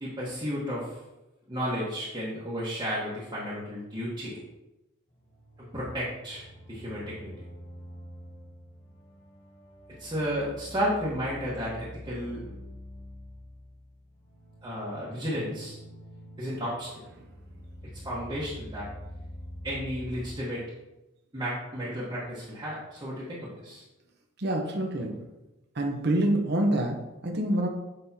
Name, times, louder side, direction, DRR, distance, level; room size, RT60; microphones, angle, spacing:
voice 1, 0.0-1.0 1.5-4.4 5.6-6.4 6.7-7.3 10.0-12.5 14.6-15.7 16.4-16.9 18.0-18.9 19.6-20.6 21.3-23.8, equal, 20° right, -10 dB, 1.3 m, -33 dB
sound 1, 5.1-20.4, equal, 30° left, 1.0 m, -46 dB
voice 2, 24.4-25.2 25.7-27.7, right 1 dB, 55° right, 1 dB, 0.9 m, -27 dB
8.0 x 5.2 x 2.8 m, 0.98 s
head